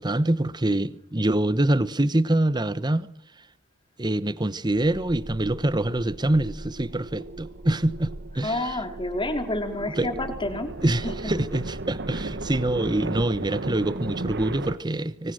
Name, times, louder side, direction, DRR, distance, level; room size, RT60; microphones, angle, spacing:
voice 1, 0.0-3.1 4.0-8.6 10.0-10.1 10.8-15.3, right 1 dB, 20° right, 1.0 m, -25 dB
sound 1, 4.7-14.8, right 2 dB, 50° right, 1.3 m, -36 dB
voice 2, 8.4-10.8 11.0-11.4, left 1 dB, 20° left, 3.7 m, -29 dB
25.0 x 25.0 x 6.4 m
head